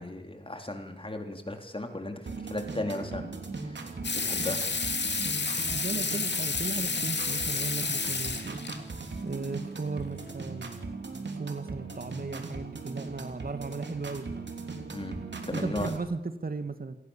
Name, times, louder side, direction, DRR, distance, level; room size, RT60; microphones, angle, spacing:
voice 1, 0.0-3.4 3.6-4.6 14.9-15.2 15.5-15.9, left 1 dB, 30° left, 5 dB, 3.8 m, -36 dB
sound 1, 2.3-16.0, right 3 dB, 75° right, 3.2 m, -39 dB
Water tap faucet / Sink (filling or washing), 4.0-8.8 10.3-10.4, left 4 dB, 70° left, 2.6 m, -30 dB
voice 2, 5.7-8.6 9.2-10.7 11.3-14.3 15.5-17.0, right 3 dB, 55° right, 9 dB, 1.9 m, -36 dB
28.0 x 19.0 x 7.3 m, 0.89 s
wide cardioid pair, 70°, 19 cm